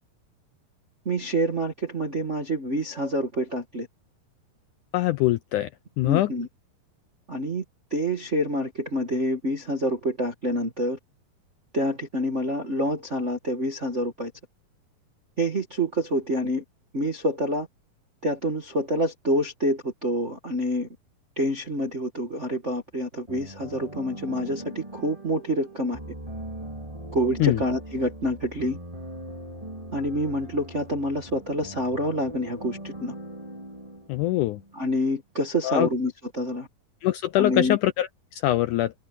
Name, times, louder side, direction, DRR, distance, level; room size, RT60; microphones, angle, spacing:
voice 1, 1.0-3.9 6.0-6.5 7.3-7.6 7.9-11.0 11.7-14.3 15.4-16.6 16.9-17.7 18.2-20.9 21.4-26.0 27.1-28.8 29.9-33.1 34.7-36.7 37.4-37.8, equal, 40° right, 1.0 m, -27 dB
voice 2, 4.9-5.7 6.0-6.3 27.4-27.6 34.1-34.6 35.6-35.9 37.0-38.9, left 15 dB, 80° left, 1.8 m, -23 dB
sound 1, 23.3-35.0, right 1 dB, 10° right, 4.9 m, -40 dB
omnidirectional pair, 4.2 m